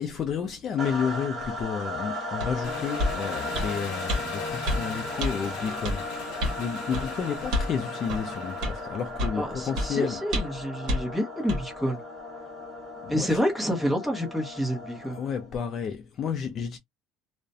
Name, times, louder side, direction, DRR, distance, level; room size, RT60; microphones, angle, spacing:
voice 1, 0.0-6.1 6.6-10.2 13.0-13.4 15.0-16.8, left 7 dB, 30° left, 0.3 m, -31 dB
sound 1, 0.8-15.5, left 1 dB, 20° right, 1.2 m, -36 dB
sound 2, 2.4-2.5 3.0-3.2 3.5-3.7 4.1-4.2 4.7-4.8 5.2-5.3 5.8-6.0 6.4-6.6 6.9-7.1 7.5-7.7 8.1-8.2 8.6-8.8 9.2-9.4 9.8-9.9 10.3-10.6 10.9-11.0 11.5-11.6, left 1 dB, 55° right, 0.9 m, -27 dB
Engine, 2.6-9.1, left 6 dB, 65° left, 0.8 m, -40 dB
voice 2, 9.4-12.0 13.1-15.2, equal, 5° right, 0.8 m, -28 dB
2.4 x 2.1 x 2.6 m
cardioid pair, 175°, 0 cm